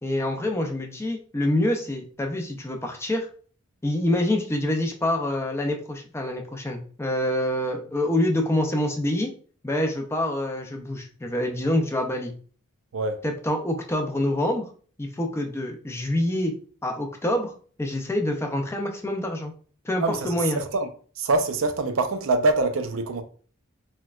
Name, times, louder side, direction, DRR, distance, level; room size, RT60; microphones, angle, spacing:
voice 1, 0.0-3.3 3.8-9.3 9.6-12.3 13.2-14.7 15.0-16.5 16.8-17.5 17.8-19.5 19.8-20.6, left 1 dB, 10° left, 0.5 m, -26 dB
voice 2, 12.9-13.2 20.0-20.9 21.2-23.2, right 3 dB, 70° right, 0.5 m, -24 dB
4.4 x 2.2 x 2.3 m
head